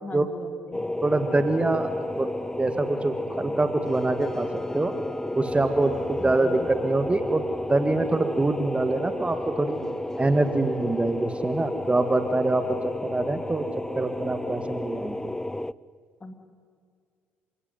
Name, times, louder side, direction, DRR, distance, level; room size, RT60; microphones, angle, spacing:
voice 1, 0.0-0.8 6.2-6.7 16.2-16.3, left 3 dB, 25° left, 7 dB, 2.9 m, -39 dB
sound 1, 0.7-15.7, left 1 dB, 10° left, 0.5 m, -32 dB
voice 2, 1.0-1.9 2.2-2.3 2.6-4.9 5.3-7.4 7.7-9.8 10.2-13.6 13.9-15.3, right 2 dB, 20° right, 9 dB, 1.7 m, -25 dB
28.0 x 17.0 x 9.5 m, 2.1 s
figure-of-eight pair, 50°, 6 cm